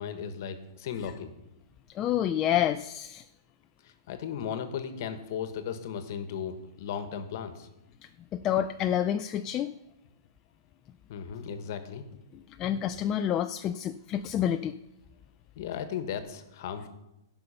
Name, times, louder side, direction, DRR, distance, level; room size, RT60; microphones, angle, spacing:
voice 1, 0.0-1.3 4.1-7.7 11.1-12.0 15.6-16.9, left 8 dB, 55° left, 9 dB, 1.3 m, -36 dB
voice 2, 1.9-3.3 8.0-9.7 12.3-14.8, left 10 dB, 25° left, 7 dB, 0.3 m, -29 dB
15.5 x 5.6 x 5.7 m, 0.90 s
hypercardioid pair, 150°, 2 cm